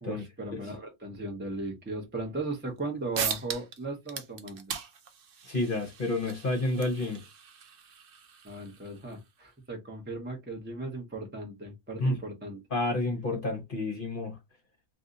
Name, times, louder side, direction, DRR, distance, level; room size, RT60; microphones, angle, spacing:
voice 1, 0.0-4.7 8.4-12.6, right 2 dB, 10° right, 0.6 m, -37 dB
sound 1, 2.8-2.9 3.1-3.8 4.1-9.2, right 7 dB, 55° right, 0.6 m, -39 dB
voice 2, 5.4-7.2 12.0-12.2 12.7-14.4, left 2 dB, 45° left, 0.9 m, -30 dB
2.7 x 2.6 x 3.8 m
omnidirectional pair, 1.5 m